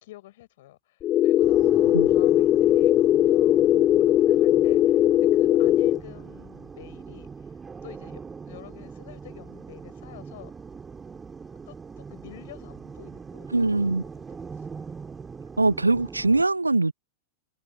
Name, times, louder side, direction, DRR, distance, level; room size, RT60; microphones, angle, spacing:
voice 1, 0.0-7.6 7.8-10.5 11.7-14.1 14.5-14.7, left 16 dB, 55° left, 7.6 m, -49 dB
sound 1, 1.0-6.0, left 12 dB, 30° left, 0.6 m, -19 dB
sound 2, 1.4-16.4, right 5 dB, 15° right, 4.0 m, -41 dB
voice 2, 13.5-14.0 15.6-16.9, right 3 dB, 80° right, 0.6 m, -22 dB
figure-of-eight pair, 90°, 0 cm